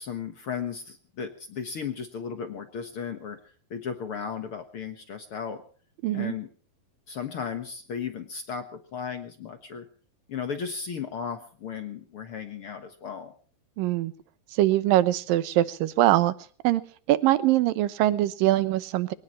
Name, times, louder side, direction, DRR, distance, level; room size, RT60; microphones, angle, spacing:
voice 1, 0.0-3.4 3.7-5.6 6.1-6.5 7.1-9.9 10.3-13.3, left 6 dB, 60° left, 7 dB, 1.5 m, -35 dB
voice 2, 6.0-6.3 13.8-14.1 14.5-16.3 16.6-16.8 17.1-19.1, right 14 dB, 75° right, 14 dB, 2.5 m, -22 dB
23.5 x 18.5 x 3.1 m, 0.43 s
omnidirectional pair, 4.3 m